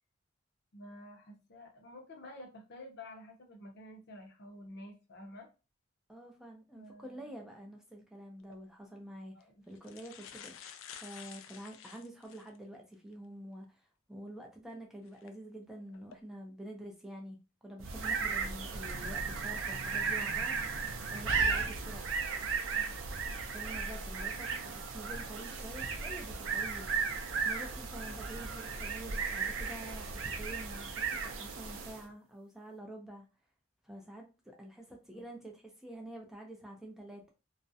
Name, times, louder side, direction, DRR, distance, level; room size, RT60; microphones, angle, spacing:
voice 1, 0.7-5.5 6.7-7.3 9.3-9.6 10.4-10.5 35.1-35.2, left 1 dB, 60° left, 0.6 m, -50 dB
voice 2, 6.1-10.6 11.0-20.6 21.1-22.1 22.7-22.9 23.5-26.9 27.4-33.3 33.8-37.3, right 1 dB, ahead, 0.3 m, -48 dB
sound 1, 8.4-8.6 9.4-9.5 9.8-12.6 13.1-13.2 15.1-15.3 15.9-16.2, left 8 dB, 85° left, 0.3 m, -50 dB
sound 2, 17.8-32.1, right 5 dB, 85° right, 0.5 m, -35 dB
2.4 x 2.0 x 2.6 m
head